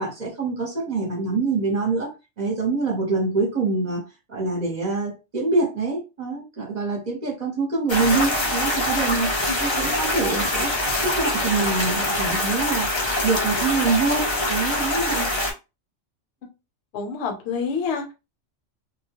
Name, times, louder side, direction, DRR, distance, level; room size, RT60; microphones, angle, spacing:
voice 1, 0.0-2.1 2.4-4.0 4.3-10.7 11.0-12.9 13.2-15.3, right 3 dB, 40° right, 0.8 m, -25 dB
sound 1, 7.9-15.5, left 1 dB, 40° left, 0.4 m, -24 dB
voice 2, 16.9-18.1, left 5 dB, 60° left, 0.9 m, -27 dB
2.2 x 2.2 x 2.8 m
omnidirectional pair, 1.4 m